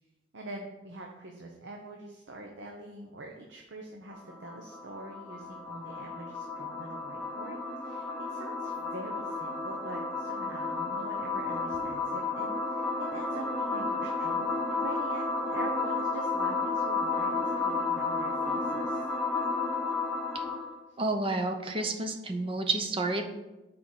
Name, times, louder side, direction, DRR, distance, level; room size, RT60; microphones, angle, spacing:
voice 1, 0.3-19.1, right 2 dB, 75° right, 1 dB, 0.8 m, -44 dB
sound 1, 4.1-20.8, left 3 dB, ahead, 0.8 m, -32 dB
voice 2, 21.0-23.2, right 2 dB, 30° right, 5 dB, 0.7 m, -30 dB
6.4 x 4.7 x 5.5 m, 1.0 s
head